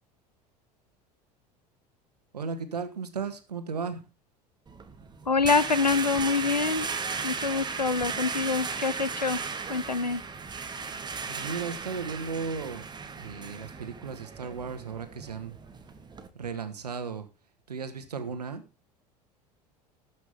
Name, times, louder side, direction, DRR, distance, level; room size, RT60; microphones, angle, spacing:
voice 1, 2.3-4.1 11.3-12.9 13.2-15.6 16.3-17.3 17.7-18.6, right 5 dB, 75° right, 1.7 m, -35 dB
sound 1, 4.7-16.3, right 5 dB, 20° right, 1.7 m, -36 dB
voice 2, 5.3-6.9 7.2-9.4 9.7-10.2, left 4 dB, 90° left, 0.5 m, -26 dB
19.0 x 6.4 x 3.5 m
figure-of-eight pair, 70°, 21 cm